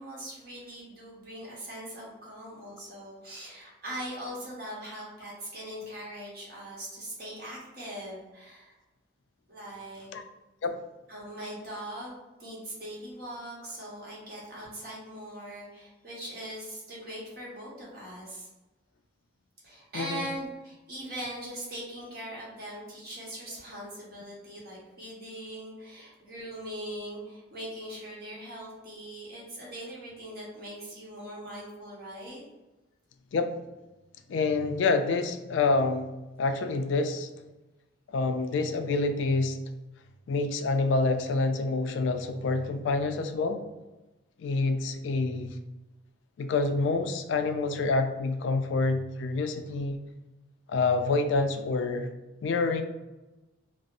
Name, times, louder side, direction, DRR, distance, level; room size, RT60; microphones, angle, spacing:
voice 1, 0.0-8.7 9.5-10.1 11.1-18.5 19.6-32.4, right 1 dB, 50° right, -5 dB, 1.1 m, -41 dB
voice 2, 34.3-37.3 38.1-39.6 40.3-43.6 44.4-45.6 46.4-50.0 50.7-52.1 52.4-52.8, left 3 dB, 70° left, 7 dB, 0.3 m, -27 dB
4.0 x 2.0 x 2.5 m, 1.1 s
head